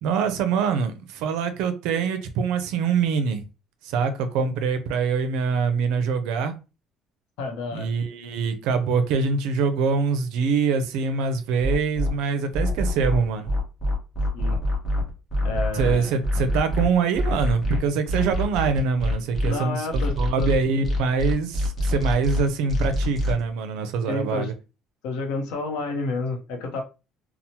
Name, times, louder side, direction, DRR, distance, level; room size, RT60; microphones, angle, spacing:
voice 1, 0.0-3.4 3.8-6.5 7.7-13.5 15.7-19.9 20.2-24.5, right 5 dB, 80° right, 0.5 m, -24 dB
voice 2, 7.4-7.9 14.3-14.6 15.4-16.2 19.5-20.5 24.1-24.5 25.0-26.8, left 3 dB, 90° left, 0.7 m, -30 dB
sound 1, 11.6-12.1 12.5-19.5 19.9-23.4, equal, 25° left, 0.8 m, -25 dB
2.9 x 2.0 x 2.8 m
cardioid pair, 155°, 0 cm